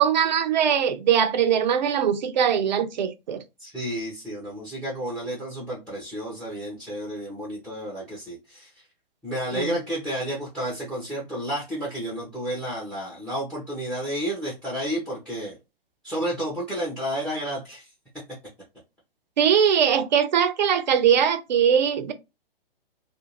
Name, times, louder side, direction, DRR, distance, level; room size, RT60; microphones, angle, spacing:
voice 1, 0.0-3.4 9.5-9.8 19.4-22.1, right 8 dB, 50° right, 0.5 m, -21 dB
voice 2, 3.6-8.7 9.2-15.6 16.0-17.9, equal, 5° left, 0.6 m, -31 dB
2.5 x 2.4 x 2.8 m
figure-of-eight pair, 120°, 30 cm